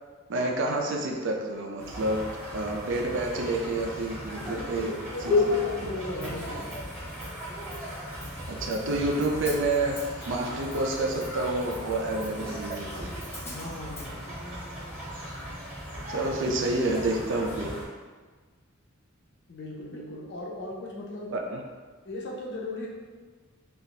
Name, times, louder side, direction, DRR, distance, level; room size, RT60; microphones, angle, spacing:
voice 1, 0.3-2.2 2.5-4.9 5.2-5.3 8.5-10.0 10.3-13.1 16.1-17.7 21.3-21.6, right 2 dB, 60° right, 1 dB, 0.5 m, -28 dB
sound 1, 1.8-17.8, left 2 dB, 10° right, 1.0 m, -35 dB
voice 2, 4.4-6.7 13.5-14.4 19.5-21.3 22.0-22.9, left 2 dB, 55° left, -2 dB, 0.6 m, -37 dB
Hi-hat, 6.2-14.1, left 1 dB, 10° left, 0.5 m, -47 dB
2.7 x 2.5 x 3.8 m, 1.4 s
head